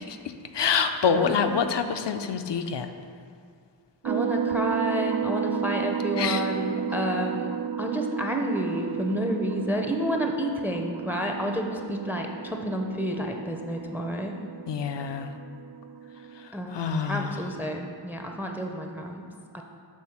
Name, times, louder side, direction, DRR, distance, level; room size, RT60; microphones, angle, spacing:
voice 1, 0.0-2.9 6.2-6.4 14.7-15.3 16.3-17.4, left 6 dB, 70° left, 7 dB, 0.6 m, -27 dB
voice 2, 1.1-1.6 4.0-7.5 7.8-14.4 16.5-19.3 19.5-19.6, equal, 5° right, 3 dB, 0.5 m, -30 dB
sound 1, 4.0-16.5, right 7 dB, 70° right, 0.6 m, -32 dB
6.5 x 3.4 x 5.8 m, 2.2 s
wide cardioid pair, 55°, 45 cm